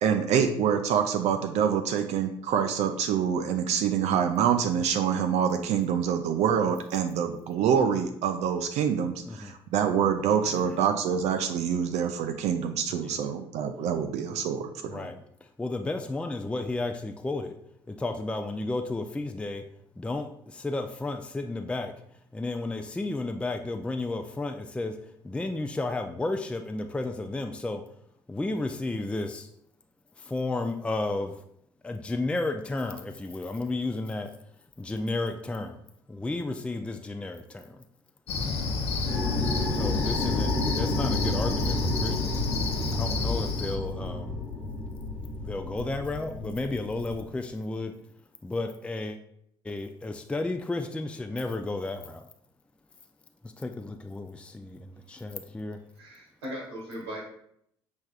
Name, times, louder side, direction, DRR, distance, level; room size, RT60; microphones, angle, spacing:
voice 1, 0.0-15.1, right 8 dB, 55° right, 6 dB, 0.4 m, -26 dB
voice 2, 9.2-9.5 10.5-10.8 12.9-13.2 14.8-15.2 15.6-17.6 17.9-19.6 20.0-22.0 22.3-25.0 25.2-27.8 28.3-29.5 30.2-31.3 31.8-34.3 34.8-35.8 36.1-37.8 39.7-42.4 42.9-44.4 45.4-47.9 48.4-49.2 49.6-52.2 53.4-55.8, left 2 dB, 10° left, 6 dB, 0.4 m, -33 dB
Cricket, 38.3-43.8, left 3 dB, 50° left, 0.7 m, -29 dB
sound 1, 39.0-47.3, left 2 dB, 85° left, 1.3 m, -32 dB
voice 3, 56.0-57.2, equal, 80° right, -3 dB, 1.1 m, -38 dB
6.1 x 3.3 x 2.4 m, 0.70 s
figure-of-eight pair, 50°, 13 cm